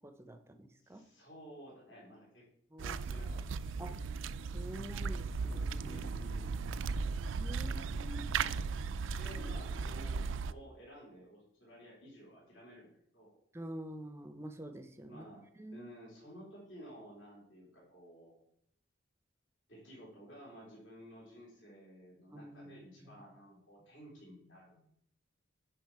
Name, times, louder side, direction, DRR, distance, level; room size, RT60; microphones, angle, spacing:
voice 1, 0.0-1.0 2.7-3.0 3.8-4.0 4.5-6.0 7.4-8.6 13.5-15.2 15.6-15.9 22.3-23.2, right 1 dB, 10° right, 8 dB, 0.6 m, -47 dB
voice 2, 0.8-2.4 2.8-3.9 5.8-6.5 9.2-12.9 13.1-13.3 15.1-15.4 15.7-18.3 19.7-24.8, equal, 65° left, -5 dB, 3.5 m, -53 dB
sound 1, 2.8-10.5, right 5 dB, 70° right, 0.4 m, -37 dB
10.5 x 4.9 x 4.6 m, 0.71 s
head